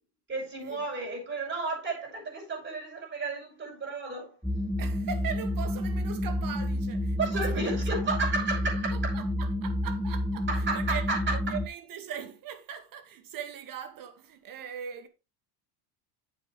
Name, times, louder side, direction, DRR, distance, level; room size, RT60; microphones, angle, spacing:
voice 1, 0.3-4.4 7.2-9.1 10.5-11.6, right 3 dB, 25° right, 6.3 m, -32 dB
sound 1, 4.4-11.7, left 1 dB, ahead, 0.6 m, -30 dB
voice 2, 4.8-7.8 8.9-15.1, right 8 dB, 45° right, 2.0 m, -40 dB
9.5 x 7.7 x 3.3 m
supercardioid pair, 120°, 47 cm